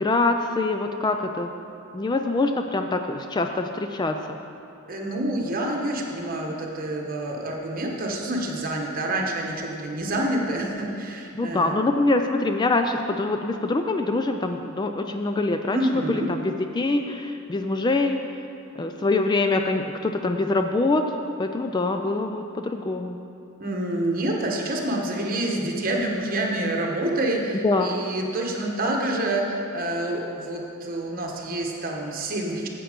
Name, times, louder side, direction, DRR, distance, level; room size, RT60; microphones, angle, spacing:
voice 1, 0.0-1.5 1.9-4.4 11.3-18.2 18.8-21.1 21.4-23.2 27.6-27.9, left 2 dB, 20° left, 5 dB, 0.3 m, -24 dB
voice 2, 4.9-11.7 15.7-16.3 23.6-32.7, right 1 dB, 45° right, 0 dB, 1.3 m, -27 dB
10.0 x 7.7 x 5.1 m, 2.7 s
head